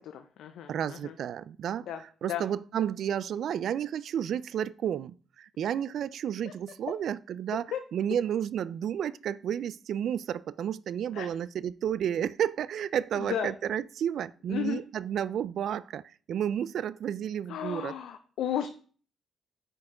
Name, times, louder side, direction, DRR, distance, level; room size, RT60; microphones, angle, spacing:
voice 1, 0.1-1.1 1.9-2.4 7.7-7.8 11.1-11.3 13.2-13.5 14.5-14.8 17.5-18.7, left 9 dB, 80° left, 0.6 m, -34 dB
voice 2, 0.7-7.7 7.9-16.0 16.3-18.0, right 9 dB, 65° right, 0.4 m, -31 dB
8.6 x 4.7 x 4.8 m
cardioid pair, 90°, 0 cm